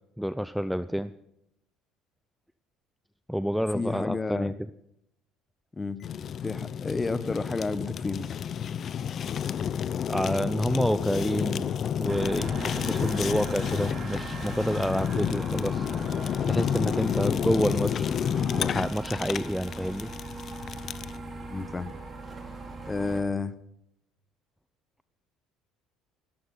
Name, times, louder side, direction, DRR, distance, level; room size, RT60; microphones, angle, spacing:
voice 1, 0.2-1.2 3.3-4.5 10.1-15.9 16.5-18.1 18.5-20.1, equal, ahead, 14 dB, 0.6 m, -28 dB
voice 2, 3.7-4.5 5.7-6.0 6.4-8.3 12.8-12.9 21.5-21.9 22.9-23.5, left 3 dB, 20° left, 15 dB, 1.1 m, -31 dB
Fire, 6.0-21.2, left 8 dB, 45° left, 0.6 m, -30 dB
sound 1, 12.1-23.2, right 3 dB, 30° right, 4.0 m, -40 dB
17.5 x 13.5 x 5.6 m, 0.77 s
supercardioid pair, 90°, 0 cm